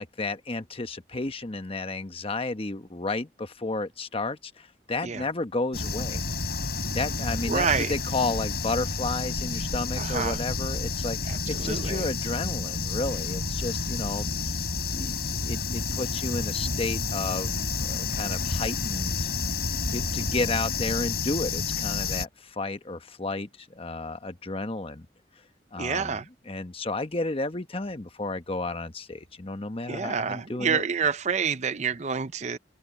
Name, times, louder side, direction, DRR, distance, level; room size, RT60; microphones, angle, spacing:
voice 1, 0.0-6.2 6.9-14.3 14.9-17.5 17.8-19.3 19.9-25.1 25.7-30.8, left 2 dB, 30° left, 1.1 m, -32 dB
sound 1, 5.7-22.3, left 4 dB, 60° left, 6.1 m, -30 dB
voice 2, 7.5-7.9 10.0-10.4 11.3-12.1 25.8-26.3 29.9-32.6, right 6 dB, 40° right, 0.6 m, -28 dB
head